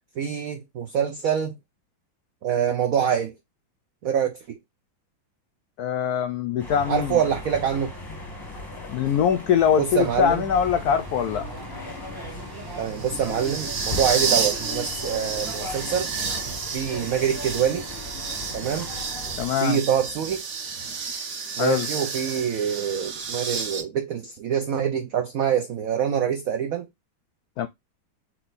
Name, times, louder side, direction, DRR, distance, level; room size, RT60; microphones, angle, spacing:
voice 1, 0.2-1.6 2.4-3.3 4.0-4.6 6.9-7.9 9.8-10.4 12.8-16.1 16.7-17.9 18.5-18.9 19.6-20.4 21.6-26.9, right 8 dB, 90° right, 0.7 m, -25 dB
voice 2, 5.8-7.2 8.9-11.5 19.4-19.8 21.6-21.9 27.6-27.7, left 8 dB, 85° left, 0.8 m, -23 dB
sound 1, 6.6-19.5, left 2 dB, 15° left, 0.8 m, -38 dB
sound 2, 10.5-19.1, left 1 dB, 15° right, 0.8 m, -43 dB
sound 3, 10.7-23.8, right 5 dB, 50° right, 1.2 m, -31 dB
4.4 x 3.1 x 3.9 m
omnidirectional pair, 2.2 m